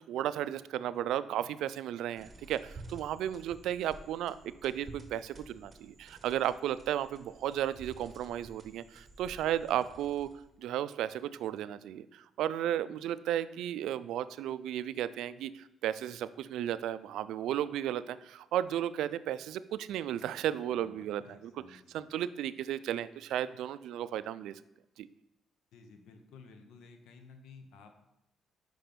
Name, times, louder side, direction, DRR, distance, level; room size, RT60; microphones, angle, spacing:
voice 1, 0.1-10.3 10.6-24.5 25.0-25.1, right 11 dB, 85° right, 15 dB, 0.3 m, -34 dB
sound 1, 2.2-10.6, right 2 dB, 30° right, 1.3 m, -52 dB
voice 2, 20.7-22.1 25.7-27.9, left 4 dB, 80° left, 6 dB, 0.9 m, -55 dB
5.2 x 5.1 x 5.9 m, 0.91 s
cardioid pair, 90°, 0 cm